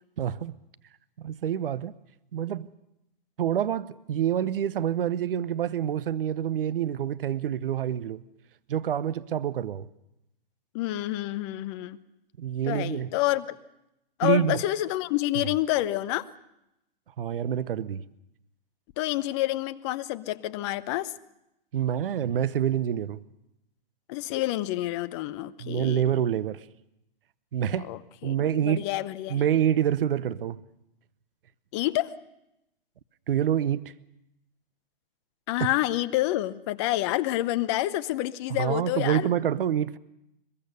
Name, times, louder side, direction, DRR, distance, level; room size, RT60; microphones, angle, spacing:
voice 1, 0.2-0.5 1.2-1.9 2.3-2.7 3.4-8.2 8.7-9.9 12.4-13.1 14.2-14.6 17.2-18.0 21.7-23.2 25.6-26.6 27.5-27.9 28.2-28.9 29.3-30.6 33.3-33.9 38.5-40.0, right 9 dB, 70° right, 0.9 m, -27 dB
voice 2, 10.7-12.0 12.7-13.6 14.2-16.3 19.0-21.1 24.1-26.0 27.9-28.3 28.6-29.4 31.7-32.1 35.5-39.3, left 16 dB, 30° left, 0.8 m, -28 dB
22.0 x 21.5 x 6.8 m
hypercardioid pair, 140°, 29 cm